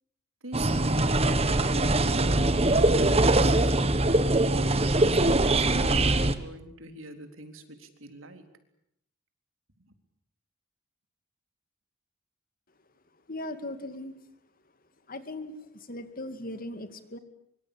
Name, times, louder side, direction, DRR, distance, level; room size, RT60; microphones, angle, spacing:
voice 1, 0.4-3.7 5.0-8.5 9.8-9.9, right 2 dB, 90° right, 7 dB, 3.8 m, -42 dB
sound 1, 0.5-6.3, right 2 dB, 30° right, 1.6 m, -22 dB
voice 2, 13.3-14.1 15.1-17.2, left 1 dB, 45° left, 10 dB, 2.5 m, -38 dB
24.5 x 24.5 x 8.8 m, 0.75 s
head